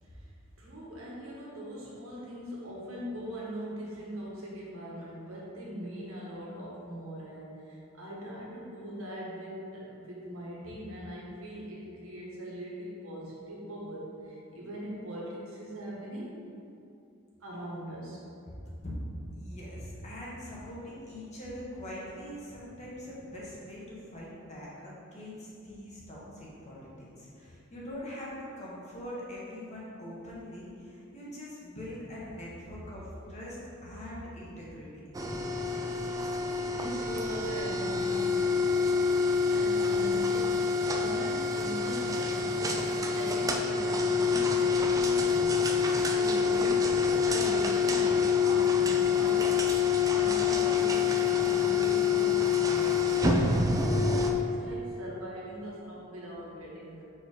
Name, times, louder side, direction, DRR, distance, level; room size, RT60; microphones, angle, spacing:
voice 1, 0.6-16.4 17.4-18.3 36.7-38.6 38.9-39.0 39.5-45.8 46.1-47.0 47.2-57.0, equal, 85° right, -4 dB, 1.4 m, -41 dB
voice 2, 18.8-35.0, equal, 35° left, -6 dB, 1.4 m, -42 dB
sound 1, 35.1-54.3, left 5 dB, 15° right, 0.4 m, -26 dB
4.6 x 4.5 x 4.9 m, 2.6 s
head